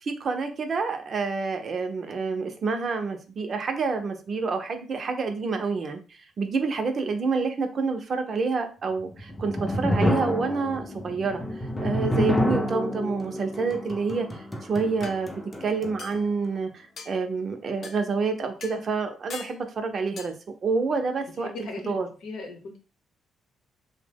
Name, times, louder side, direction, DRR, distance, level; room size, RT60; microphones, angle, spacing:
voice 1, 0.0-6.0 6.4-11.4 11.8-14.3 14.6-15.3 15.6-20.3 20.6-21.5 21.9-22.1, right 4 dB, 50° right, 6 dB, 0.5 m, -28 dB
sound 1, 9.0-16.2, left 1 dB, 15° left, 0.6 m, -28 dB
sound 2, 15.0-15.2 16.0-16.3 17.0-17.1 17.8-18.0 18.6-18.8 19.3-19.6 20.2-20.3, left 5 dB, 55° left, 0.4 m, -40 dB
voice 2, 21.4-22.8, left 3 dB, 75° left, 2 dB, 0.8 m, -38 dB
2.7 x 2.1 x 3.4 m, 0.35 s
cardioid pair, 90°, 0 cm